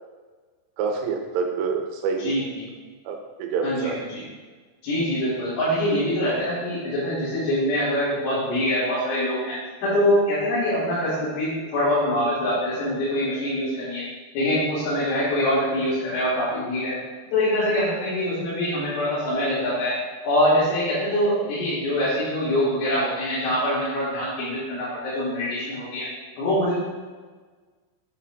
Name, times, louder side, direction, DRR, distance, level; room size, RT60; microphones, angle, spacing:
voice 1, 0.8-2.4 3.1-4.0 11.6-11.7, right 5 dB, 90° right, 2 dB, 3.4 m, -27 dB
voice 2, 2.2-2.6 3.6-4.2 4.8-14.0 14.3-17.0 17.3-20.0 20.2-26.1 26.4-26.8, left 1 dB, 75° left, -14 dB, 5.2 m, -24 dB
10.5 x 6.9 x 2.5 m, 1.4 s
omnidirectional pair, 5.7 m